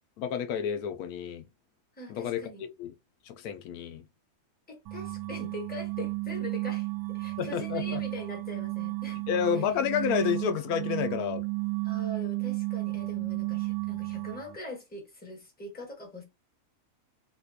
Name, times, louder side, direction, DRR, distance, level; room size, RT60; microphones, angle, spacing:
voice 1, 0.2-1.5 2.1-2.9 3.2-4.1 7.4-8.0 9.3-11.4, left 8 dB, 85° left, 1.1 m, -30 dB
voice 2, 2.0-2.6 4.7-9.2 9.5-9.7 11.8-16.2, left 1 dB, 5° left, 1.1 m, -42 dB
sound 1, 4.9-14.6, right 24 dB, 90° right, 1.1 m, -33 dB
4.1 x 2.3 x 2.7 m
omnidirectional pair, 1.5 m